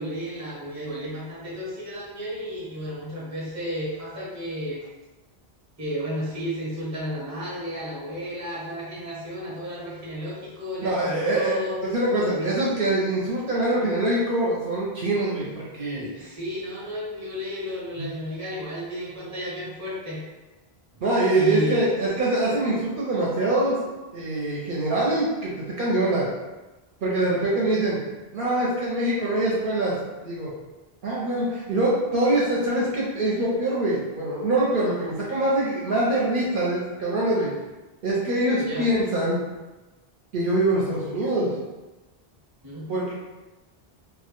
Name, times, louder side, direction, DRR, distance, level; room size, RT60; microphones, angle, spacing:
voice 1, 0.0-4.8 5.8-11.8 12.2-12.5 16.1-20.2 21.3-21.8 38.6-38.9 42.6-42.9, equal, 20° right, -6 dB, 0.6 m, -32 dB
voice 2, 10.8-11.6 11.8-16.3 18.0-18.1 21.0-23.8 24.1-26.3 27.0-28.0 28.3-29.9 30.2-30.5 31.0-37.5 38.0-39.4 40.3-41.5 42.9-43.1, right 1 dB, 65° right, -6 dB, 0.7 m, -24 dB
2.1 x 2.1 x 2.9 m, 1.1 s
omnidirectional pair, 1.0 m